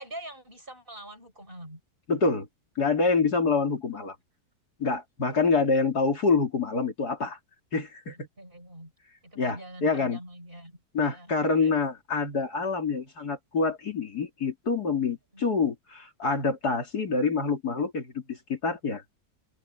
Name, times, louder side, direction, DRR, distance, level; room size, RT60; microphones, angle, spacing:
voice 1, 0.0-1.8 5.2-5.4 8.1-8.9 9.2-11.7 15.3-15.4, right 1 dB, 35° right, 5.9 m, -45 dB
voice 2, 2.1-2.5 2.8-4.2 4.8-7.4 7.7-8.3 9.4-10.2 10.9-19.0, left 4 dB, 75° left, 3.5 m, -26 dB
open air
omnidirectional pair, 1.7 m